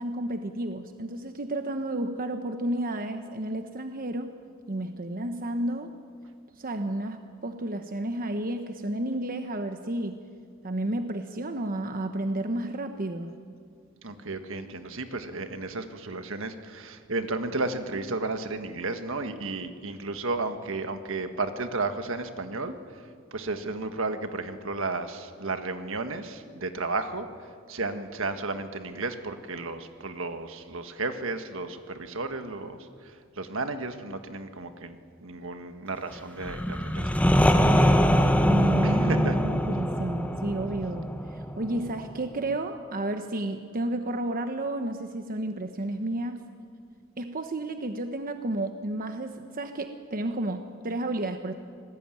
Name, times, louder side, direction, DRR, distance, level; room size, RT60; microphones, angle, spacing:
voice 1, 0.0-4.3 4.7-5.9 6.6-10.1 10.6-13.3 38.4-46.4 47.2-51.5, right 1 dB, 45° right, 7 dB, 1.1 m, -31 dB
voice 2, 14.0-23.0 23.3-27.3 27.7-37.5 38.8-39.4, right 3 dB, 70° right, 8 dB, 1.6 m, -33 dB
sound 1, 36.4-42.2, equal, 5° left, 1.1 m, -23 dB
26.5 x 19.0 x 9.2 m, 2.2 s
head